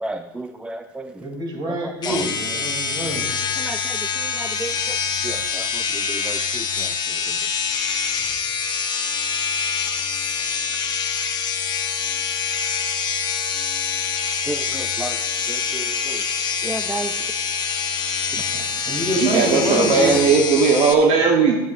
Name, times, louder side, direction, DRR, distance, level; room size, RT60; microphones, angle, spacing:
voice 1, 0.0-1.3 1.7-2.3 3.6-5.0 5.2-7.5 14.4-15.2 15.5-16.3 16.6-17.2 18.3-18.5, right 2 dB, 10° right, 7 dB, 0.4 m, -33 dB
voice 2, 1.2-3.3 18.5-20.2, right 1 dB, 35° right, 0 dB, 3.4 m, -26 dB
sound 1, 2.0-20.9, left 6 dB, 35° left, 1.2 m, -25 dB
voice 3, 19.1-21.6, right 5 dB, 55° right, 1 dB, 1.2 m, -17 dB
12.5 x 9.4 x 2.6 m, 1.1 s
supercardioid pair, 95°, 13 cm